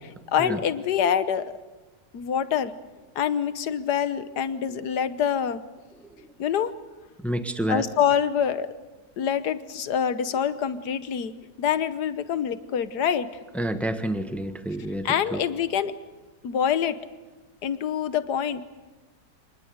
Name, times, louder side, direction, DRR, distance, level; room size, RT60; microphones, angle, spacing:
voice 1, 0.0-1.5 2.1-2.8 3.1-5.6 6.4-6.7 7.7-8.7 9.2-11.3 11.6-13.3 15.0-15.9 16.4-17.0 17.6-18.6, left 8 dB, 80° left, 14 dB, 1.6 m, -25 dB
voice 2, 7.2-7.8 13.5-15.4, right 1 dB, ahead, 9 dB, 1.1 m, -29 dB
25.5 x 20.0 x 8.0 m, 1.3 s
omnidirectional pair, 1.7 m